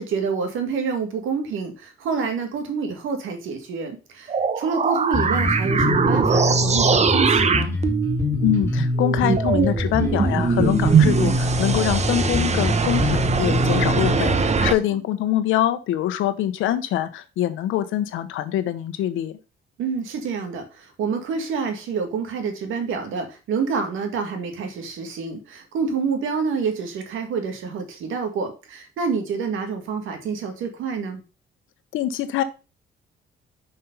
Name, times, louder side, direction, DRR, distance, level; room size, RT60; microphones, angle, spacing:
voice 1, 0.0-7.7 14.5-14.7 19.8-31.2, right 5 dB, 85° right, 5 dB, 2.0 m, -28 dB
sound 1, 4.3-14.7, right 6 dB, 35° right, 0.8 m, -22 dB
Bass guitar, 5.1-14.7, left 1 dB, 15° left, 3.3 m, -24 dB
voice 2, 8.4-19.4 31.9-32.4, left 12 dB, 90° left, 11 dB, 0.9 m, -24 dB
5.8 x 5.5 x 5.4 m, 0.31 s
cardioid pair, 90°, 20 cm